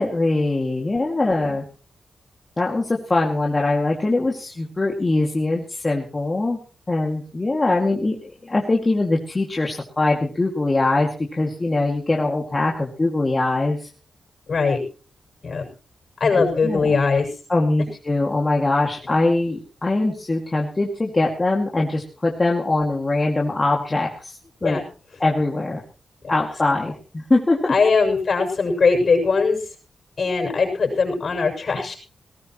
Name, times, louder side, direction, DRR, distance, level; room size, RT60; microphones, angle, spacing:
voice 1, 0.0-1.6 2.6-6.6 6.9-13.9 16.4-17.0 17.5-24.8 25.2-25.8 26.3-27.7, left 2 dB, 20° left, -1 dB, 2.3 m, -22 dB
voice 2, 0.9-1.4 14.5-14.8 15.4-15.7 16.2-17.3 24.6-24.8 27.7-29.6 30.2-32.0, left 4 dB, 50° left, 2 dB, 6.6 m, -20 dB
19.5 x 18.0 x 3.1 m, 0.37 s
wide cardioid pair, 135°, 0 cm